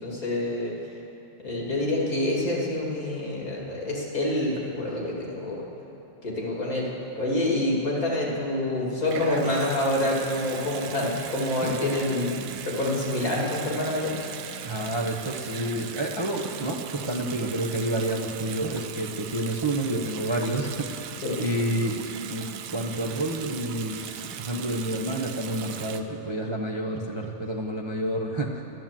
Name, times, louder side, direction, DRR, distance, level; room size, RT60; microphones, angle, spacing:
voice 1, 0.0-0.7 1.4-5.6 6.2-6.9 7.1-14.1 21.2-21.4, left 1 dB, 45° left, -3 dB, 2.8 m, -27 dB
Water tap faucet / Sink (filling or washing) / Bathtub (filling or washing), 9.1-26.0, right 9 dB, 70° right, 1.2 m, -39 dB
voice 2, 14.6-22.0 22.3-28.6, right 1 dB, 45° right, -1 dB, 0.3 m, -29 dB
11.5 x 10.5 x 7.5 m, 3.0 s
omnidirectional pair, 2.1 m